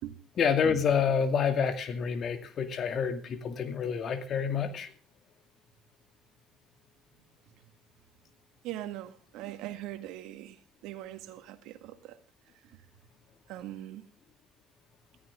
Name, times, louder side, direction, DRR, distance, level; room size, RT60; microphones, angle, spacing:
voice 1, 0.4-4.9, left 6 dB, 50° left, 8 dB, 2.3 m, -28 dB
voice 2, 8.6-10.6 10.8-12.2 13.5-14.0, right 13 dB, 75° right, 8 dB, 1.8 m, -41 dB
17.5 x 14.0 x 3.6 m, 0.36 s
supercardioid pair, 80°, 0 cm